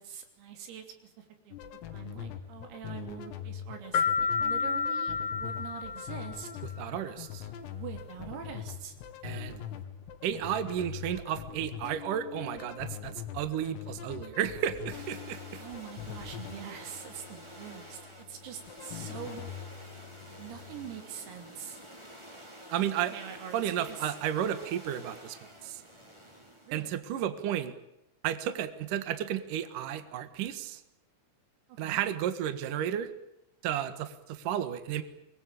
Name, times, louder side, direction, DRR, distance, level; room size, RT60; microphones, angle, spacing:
voice 1, 0.0-1.6 1.9-6.5 7.7-9.0 15.6-19.6 20.4-21.8 22.8-24.2 26.7-26.9 31.7-32.0, right 8 dB, 80° right, 5 dB, 5.8 m, -44 dB
sound 1, 1.5-21.0, left 9 dB, 90° left, 4.5 m, -43 dB
sound 2, 3.9-6.6, left 5 dB, 65° left, 1.5 m, -30 dB
voice 2, 6.8-7.5 9.2-9.6 10.2-15.6 22.7-23.1 23.5-25.8 26.7-27.7 28.2-30.8 31.8-33.1 33.6-35.0, right 10 dB, 65° right, 10 dB, 2.2 m, -33 dB
sound 3, 14.9-26.9, equal, 10° right, 2.0 m, -49 dB
24.5 x 21.5 x 8.6 m, 0.86 s
omnidirectional pair, 6.0 m